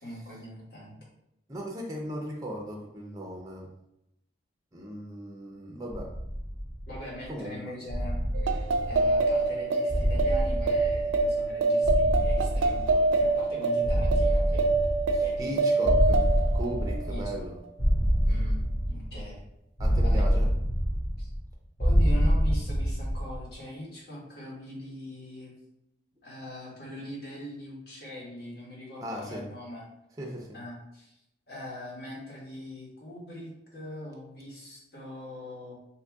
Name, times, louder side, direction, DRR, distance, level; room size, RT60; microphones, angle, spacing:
voice 1, 0.0-0.9 6.9-14.7 15.2-15.7 17.1-17.2 18.2-19.4 20.0-20.3 21.2-21.3 21.8-25.5 26.2-29.9 30.5-31.2 31.5-35.7, left 1 dB, 55° left, -5 dB, 1.3 m, -41 dB
voice 2, 1.5-3.7 4.7-6.1 7.3-7.6 15.1-16.2 16.5-17.6 19.8-20.5 29.0-29.4 30.2-30.6, equal, 20° right, -1 dB, 0.5 m, -37 dB
sound 1, 5.9-7.2 7.9-9.4 9.9-11.5 11.8-13.4 13.8-15.5 15.8-17.5 17.8-19.4 19.8-21.5 21.8-23.4, equal, 30° left, 1.3 m, -27 dB
sound 2, 8.3-17.3, right 3 dB, 85° right, 0.3 m, -26 dB
2.9 x 2.6 x 3.4 m, 0.83 s
head